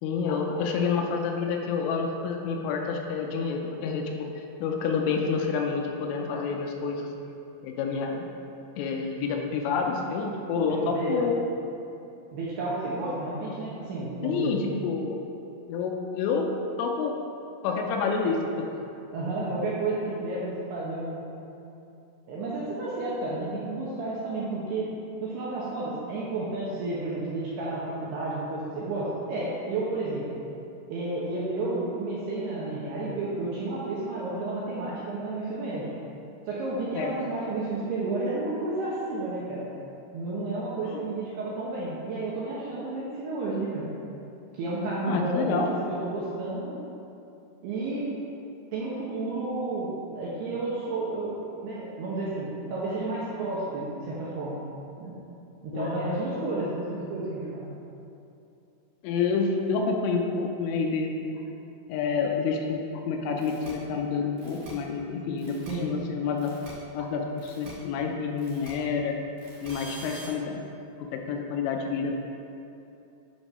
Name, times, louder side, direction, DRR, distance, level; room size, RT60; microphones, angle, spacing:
voice 1, 0.0-4.0 4.6-7.1 7.6-8.2 8.8-11.3 14.2-15.2 15.7-16.5 16.8-17.1 17.6-18.7 36.9-37.1 40.9-41.0 45.1-45.7 55.7-56.0 59.0-61.4 61.9-65.6 65.8-66.5 66.9-69.2 69.6-70.6 71.0-72.2, left 5 dB, 80° left, 2 dB, 3.1 m, -28 dB
voice 2, 10.7-11.2 12.3-14.6 19.1-21.2 22.3-24.9 25.2-30.3 30.9-35.9 36.5-39.7 40.1-43.9 44.6-46.7 47.6-48.1 48.7-54.6 55.0-55.2 55.6-57.7 65.7-66.0, right 2 dB, 75° right, -7 dB, 2.4 m, -31 dB
sound 1, 63.4-63.7 64.4-64.7 65.4-65.7 66.4-66.7 67.4-67.7 68.4-68.7 69.4-70.3, right 1 dB, 50° right, 2.7 m, -45 dB
10.5 x 4.5 x 5.4 m, 2.8 s
omnidirectional pair, 5.9 m